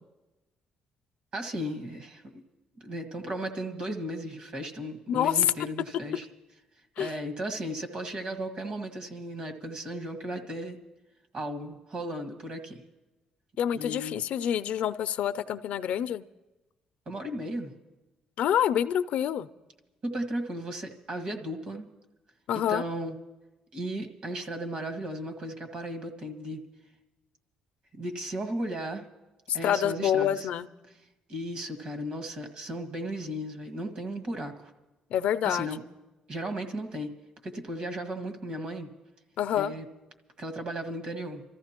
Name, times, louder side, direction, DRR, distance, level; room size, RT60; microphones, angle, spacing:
voice 1, 1.3-2.4 2.8-6.2 7.0-10.8 11.3-12.8 13.7-14.2 17.0-17.7 20.0-21.9 22.5-23.1 23.7-26.6 28.0-29.0 29.5-30.5 31.3-34.7 35.4-35.8 36.3-37.1 37.4-38.9 39.5-39.8 40.4-41.4, right 1 dB, 55° right, 5 dB, 1.7 m, -35 dB
voice 2, 5.1-5.4 7.0-7.1 13.6-16.2 18.4-19.5 22.5-22.8 29.5-30.7 35.1-35.7 39.4-39.7, left 10 dB, 75° left, 14 dB, 0.4 m, -27 dB
27.0 x 14.0 x 2.9 m, 1.1 s
cardioid pair, 115°, 2 cm